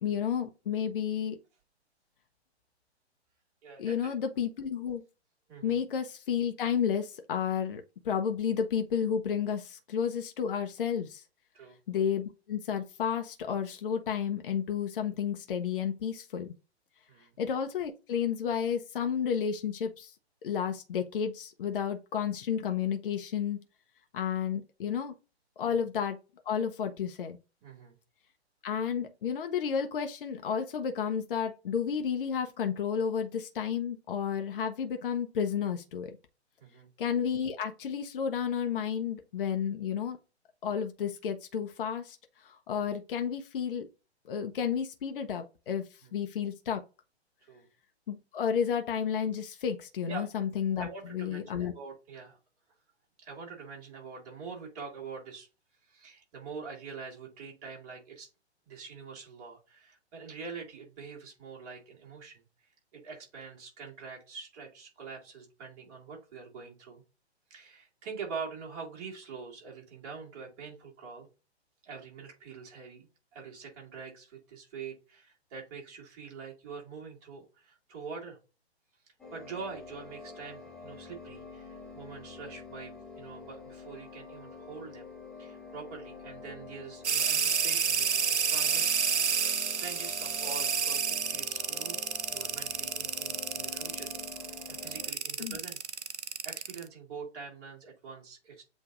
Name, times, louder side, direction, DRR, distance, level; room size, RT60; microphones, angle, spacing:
voice 1, 0.0-1.4 3.8-5.0 5.6-11.2 11.9-16.5 17.4-20.1 20.4-23.6 24.1-25.1 25.6-26.2 26.5-27.4 28.6-36.2 37.0-40.2 40.6-42.2 42.4-43.9 44.3-46.8 48.1-51.7 95.4-95.6, left 7 dB, 55° left, 0.7 m, -31 dB
voice 2, 3.6-4.1 5.5-5.8 11.5-11.8 17.1-17.3 25.7-25.8 27.6-28.0 36.6-36.9 46.0-46.1 47.5-47.7 50.1-50.3 50.8-52.4 53.2-55.5 55.9-58.3 58.7-62.4 62.9-67.0 67.5-71.3 71.8-73.1 73.3-78.4 79.3-85.1 85.4-88.9 89.7-92.0 92.3-94.1 94.7-96.1 96.4-98.6, right 5 dB, 35° right, 2.3 m, -44 dB
sound 1, 79.2-95.1, left 4 dB, ahead, 0.4 m, -47 dB
sound 2, 87.0-96.8, right 6 dB, 85° right, 0.6 m, -29 dB
7.9 x 2.7 x 2.4 m
figure-of-eight pair, 125°, 33 cm